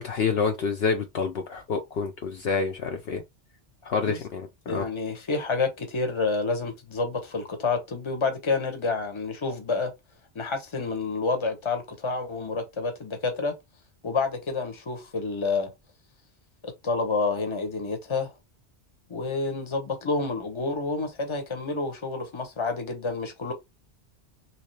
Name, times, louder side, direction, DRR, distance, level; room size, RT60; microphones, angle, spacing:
voice 1, 0.0-3.2 3.8-4.9, left 5 dB, 65° left, 0.8 m, -28 dB
voice 2, 4.7-9.9 10.3-13.5 14.0-15.7 16.6-18.3 19.1-23.5, left 3 dB, 30° left, 0.8 m, -29 dB
3.2 x 2.9 x 3.2 m
omnidirectional pair, 1.2 m